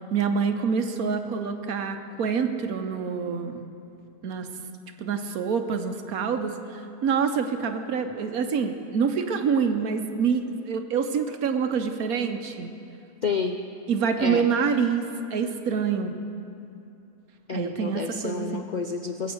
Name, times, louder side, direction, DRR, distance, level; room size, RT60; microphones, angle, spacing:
voice 1, 0.1-3.7 4.2-4.5 5.0-12.7 13.9-16.2 17.5-18.7, right 6 dB, 65° right, 7 dB, 1.3 m, -26 dB
voice 2, 13.2-13.6 14.2-14.5 17.5-19.3, left 4 dB, 90° left, 4 dB, 0.4 m, -29 dB
20.5 x 7.8 x 7.9 m, 2.7 s
omnidirectional pair, 1.7 m